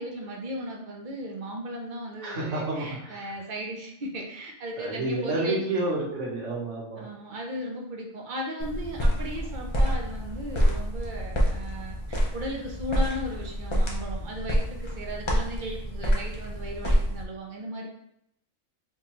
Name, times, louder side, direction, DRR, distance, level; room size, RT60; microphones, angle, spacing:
voice 1, 0.0-5.6 7.0-17.9, equal, 50° right, 0 dB, 0.7 m, -36 dB
voice 2, 2.2-3.4 4.8-7.1, right 2 dB, 65° right, -2 dB, 1.3 m, -30 dB
sound 1, 8.6-17.2, equal, 40° left, 0.4 m, -27 dB
4.4 x 2.3 x 2.9 m, 0.75 s
omnidirectional pair, 1.4 m